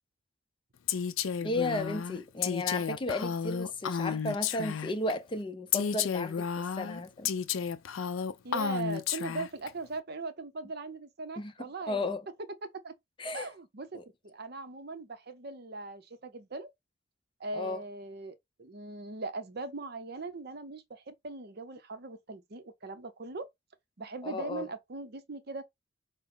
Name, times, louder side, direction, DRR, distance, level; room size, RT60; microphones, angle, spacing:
Female speech woman speaking, 0.9-5.1 5.7-9.7, left 7 dB, 75° left, 0.5 m, -32 dB
voice 1, 1.4-7.3 11.4-12.2 13.2-13.5 13.9-14.0 17.5-17.8 24.2-24.7, left 2 dB, 25° left, 0.5 m, -34 dB
voice 2, 8.4-12.1 12.6-12.9 13.3-16.7 17.4-23.5 24.0-25.6, right 3 dB, 50° right, 0.7 m, -40 dB
6.1 x 2.0 x 3.9 m
head